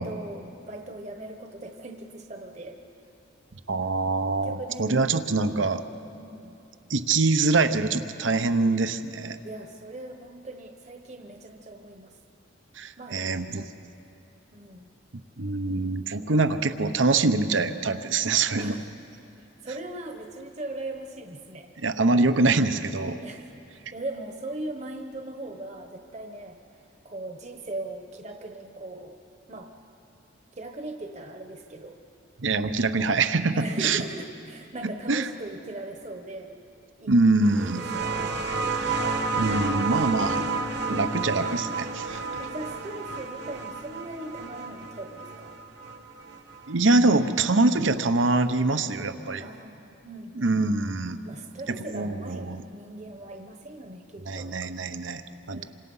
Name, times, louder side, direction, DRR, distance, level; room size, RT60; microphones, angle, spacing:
voice 1, 0.0-2.8 4.3-4.9 6.1-6.6 8.5-8.8 9.4-12.1 13.0-13.4 14.5-14.9 18.5-18.8 19.6-21.7 22.0-22.3 23.2-26.6 27.0-29.2 29.5-29.7 30.6-32.0 33.5-36.6 37.0-37.2 37.6-38.2 40.7-41.0 42.4-45.5 49.4-50.5 51.2-54.5 55.5-55.6, right 2 dB, 35° right, 4 dB, 1.1 m, -39 dB
voice 2, 3.7-5.8 6.9-9.4 12.7-13.7 15.4-18.8 21.8-23.2 32.4-34.0 34.8-35.3 37.1-37.8 38.7-39.0 39.4-40.4 40.9-42.2 46.7-49.5 50.4-51.2 51.7-52.6 54.3-55.6, right 3 dB, 75° right, 10 dB, 0.9 m, -24 dB
sound 1, 37.4-46.7 47.8-47.9, right 4 dB, 60° right, 1.4 m, -31 dB
28.0 x 25.5 x 5.6 m, 2.7 s
head